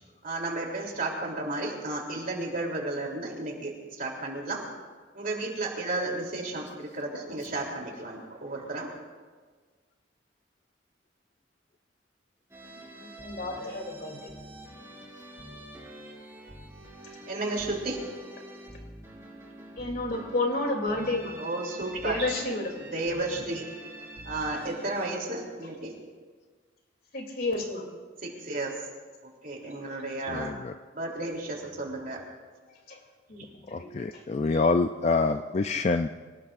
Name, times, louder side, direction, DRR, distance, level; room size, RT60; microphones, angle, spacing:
voice 1, 0.2-4.6 5.1-8.9 17.3-18.0 21.4-22.3 22.8-23.6 24.2-25.9 28.2-28.8 29.2-30.5 30.9-32.2 33.4-33.5 34.5-34.6, right 2 dB, 50° right, -1 dB, 3.2 m, -33 dB
sound 1, 12.5-25.1, right 1 dB, 15° right, 3.4 m, -45 dB
voice 2, 13.0-14.2 19.8-21.4 22.0-22.7 27.1-27.9 32.9-33.0 33.3-34.2, left 2 dB, 55° left, 1 dB, 2.9 m, -31 dB
voice 3, 30.3-30.7 33.7-36.1, left 3 dB, 35° left, 8 dB, 0.4 m, -26 dB
25.0 x 18.5 x 2.5 m, 1.5 s
head